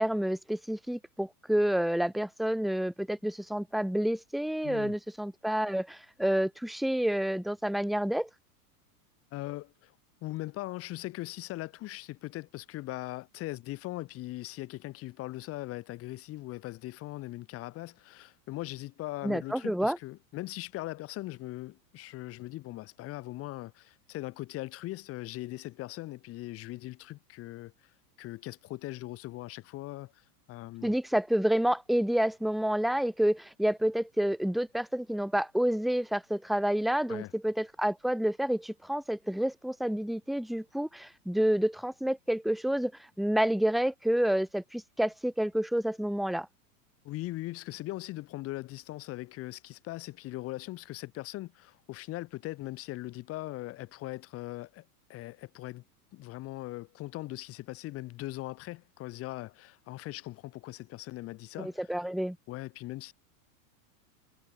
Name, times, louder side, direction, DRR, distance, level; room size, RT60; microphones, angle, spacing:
voice 1, 0.0-8.3 19.2-20.0 30.8-42.9 43.2-46.5 61.6-62.4, right 1 dB, ahead, 2.0 m, -29 dB
voice 2, 4.6-5.0 9.3-9.9 10.2-27.9 28.2-30.9 37.1-37.3 47.0-55.8 56.1-61.9 62.5-63.1, left 18 dB, 30° left, 5.6 m, -40 dB
supercardioid pair, 165°, 47 cm